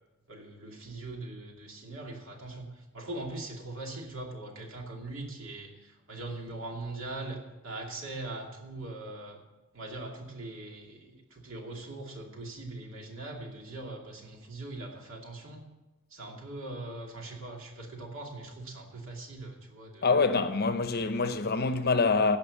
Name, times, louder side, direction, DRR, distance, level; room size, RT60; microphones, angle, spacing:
voice 1, 0.3-9.4 9.7-15.6 16.1-20.2, right 2 dB, 65° right, 2.6 m, -41 dB
voice 2, 20.0-22.4, left 4 dB, 50° left, 0.8 m, -25 dB
16.0 x 5.9 x 7.1 m
head